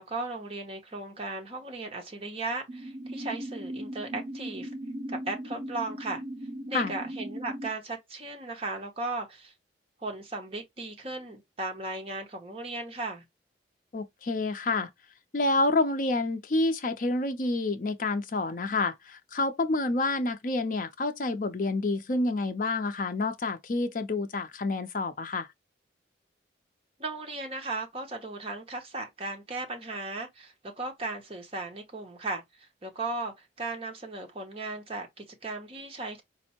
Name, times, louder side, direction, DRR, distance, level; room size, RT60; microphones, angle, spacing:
voice 1, 0.0-4.7 5.1-6.2 6.7-9.5 10.0-13.3 27.0-36.2, right 2 dB, 30° right, 0.8 m, -36 dB
sound 1, 2.7-7.7, right 1 dB, 70° right, 0.7 m, -38 dB
voice 2, 13.9-14.9 15.3-25.5, left 2 dB, 45° left, 0.5 m, -28 dB
4.2 x 2.1 x 2.8 m
head